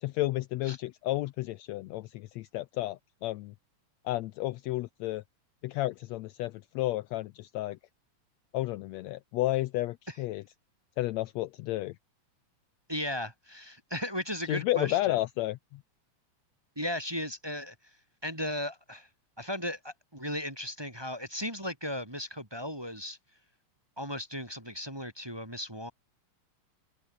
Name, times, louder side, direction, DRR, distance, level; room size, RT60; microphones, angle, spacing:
voice 1, 0.0-3.5 4.0-5.2 5.6-7.8 8.5-10.4 11.0-12.0 14.4-15.8, left 17 dB, 80° left, 1.6 m, -32 dB
voice 2, 12.9-15.2 16.8-17.7 18.2-19.1 19.4-23.2 24.0-25.9, left 1 dB, 10° right, 2.4 m, -36 dB
open air
omnidirectional pair, 3.6 m